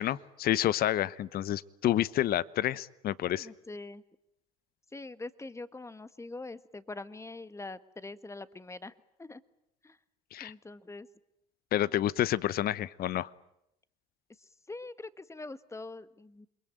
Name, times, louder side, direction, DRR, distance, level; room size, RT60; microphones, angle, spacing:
voice 1, 0.0-3.5 10.3-10.5 11.7-13.3, left 12 dB, 55° left, 20 dB, 1.0 m, -29 dB
voice 2, 3.4-4.0 4.9-9.4 9.8-10.0 10.4-11.1 14.4-16.5, left 2 dB, 15° left, 14 dB, 1.5 m, -44 dB
27.5 x 22.0 x 9.1 m, 0.81 s
hypercardioid pair, 75°, 19 cm